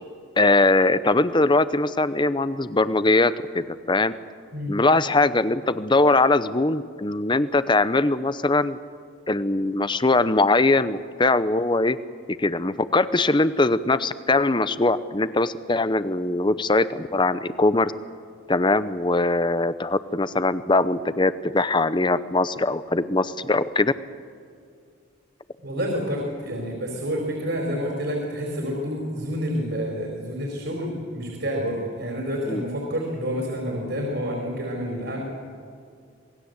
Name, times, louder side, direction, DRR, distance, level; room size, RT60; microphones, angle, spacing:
voice 1, 0.4-4.1 4.7-8.8 9.3-12.0 12.4-17.9 18.5-23.9 32.5-32.6, left 2 dB, 25° left, 14 dB, 0.8 m, -21 dB
voice 2, 25.6-35.2, equal, 60° right, 0 dB, 4.6 m, -28 dB
27.0 x 20.0 x 8.2 m, 2.3 s
head